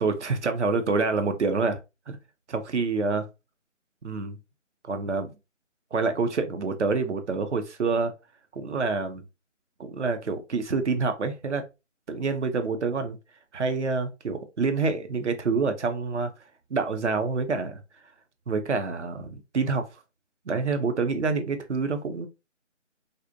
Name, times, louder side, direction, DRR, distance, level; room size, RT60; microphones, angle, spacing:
voice 1, 0.0-1.8 2.1-2.2 2.5-3.3 4.0-4.4 4.8-5.3 5.9-8.1 8.5-9.2 9.8-11.6 12.1-13.2 13.5-16.3 16.7-17.8 18.5-19.8 20.5-22.3, right 4 dB, 65° right, 0.6 m, -27 dB
2.5 x 2.0 x 2.5 m
figure-of-eight pair, 165°, 38 cm